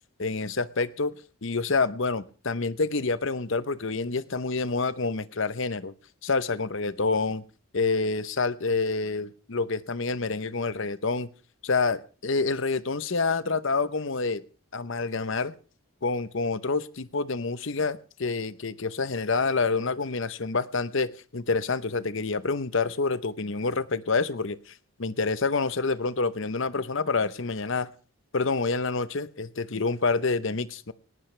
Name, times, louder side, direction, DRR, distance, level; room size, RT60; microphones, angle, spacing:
voice 1, 0.2-1.2 1.4-5.9 6.2-7.4 7.7-11.3 11.6-14.4 14.7-15.5 16.0-24.7 25.0-27.9 28.3-30.9, left 4 dB, 55° left, 15 dB, 0.8 m, -27 dB
18.5 x 18.5 x 3.3 m, 0.37 s
head